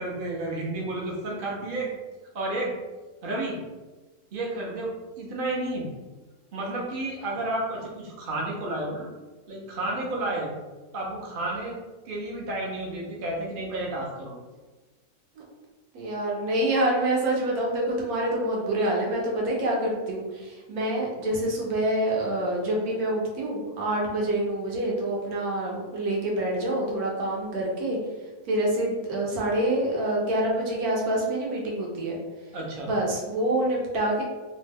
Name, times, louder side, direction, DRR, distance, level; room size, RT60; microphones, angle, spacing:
voice 1, 0.0-1.9 2.3-2.7 3.2-3.6 4.3-4.9 5.2-5.9 6.5-9.1 9.5-10.5 10.9-11.8 12.1-14.3 32.5-32.9, right 2 dB, 50° right, -3 dB, 0.7 m, -31 dB
voice 2, 15.9-28.0 28.5-32.2 32.9-34.2, right 1 dB, 75° right, -2 dB, 1.2 m, -26 dB
2.9 x 2.2 x 3.3 m, 1.2 s
omnidirectional pair, 1.6 m